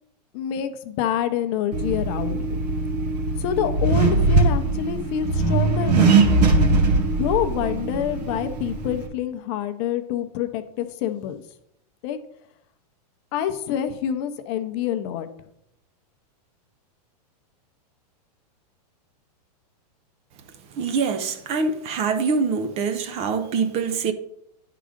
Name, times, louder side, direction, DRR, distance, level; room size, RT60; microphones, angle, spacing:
voice 1, 0.3-2.6 3.4-6.3 7.2-11.4 12.0-12.2 13.3-15.3, left 10 dB, 40° left, 0.7 m, -27 dB
Accelerating revving vroom, 1.7-9.1, right 3 dB, 80° right, 1.6 m, -21 dB
voice 2, 20.7-24.1, right 5 dB, 30° right, 0.6 m, -24 dB
10.0 x 3.8 x 5.0 m
supercardioid pair, 145°, 21 cm